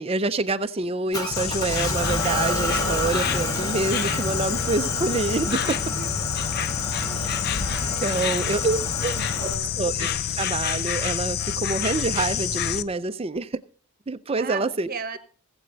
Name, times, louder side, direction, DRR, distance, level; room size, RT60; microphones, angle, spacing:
voice 1, 0.0-5.8 7.2-7.3 8.0-9.5 9.8-13.6 14.1-14.9, right 3 dB, 25° right, 12 dB, 0.5 m, -27 dB
Motor vehicle (road) / Engine, 1.1-9.5, left 1 dB, 20° left, 1.6 m, -30 dB
Insect, 1.3-12.8, left 9 dB, 45° left, 0.5 m, -28 dB
voice 2, 5.5-6.1 7.0-7.3 7.6-8.5 8.8-9.8 14.4-15.2, right 5 dB, 45° right, 11 dB, 1.1 m, -38 dB
18.5 x 7.9 x 4.0 m, 0.44 s
head